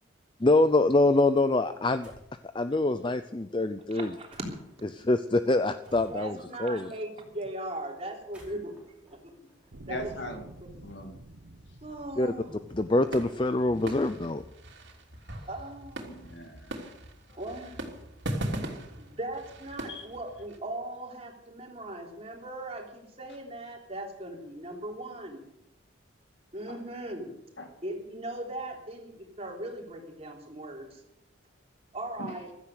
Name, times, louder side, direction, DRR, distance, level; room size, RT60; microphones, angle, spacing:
voice 1, 0.4-2.1 2.5-4.1 4.9-6.9 12.2-12.3 12.7-14.4, left 2 dB, 25° left, 11 dB, 0.5 m, -25 dB
sound 1, 2.0-2.4 4.3-4.8 5.8-6.5 8.1-10.1, right 1 dB, 5° right, 4.6 m, -55 dB
voice 2, 3.9-4.4 5.9-9.3 9.9-10.1 10.6-10.7 11.8-12.5 15.5-16.1 17.3-17.8 19.0-25.4 26.5-27.3 27.8-31.0 31.9-32.5, right 1 dB, 30° right, 1 dB, 3.4 m, -39 dB
sound 2, 9.7-15.0 15.7-15.8, right 1 dB, 80° right, 1.4 m, -51 dB
voice 3, 9.9-10.4 10.8-11.1 16.0-16.8 19.9-20.1 26.7-26.8 27.6-27.7 32.2-32.3, left 1 dB, 55° left, 5 dB, 2.3 m, -39 dB
sound 3, 12.7-20.6, right 1 dB, 60° right, 3.1 m, -39 dB
16.0 x 13.5 x 6.5 m, 0.81 s
head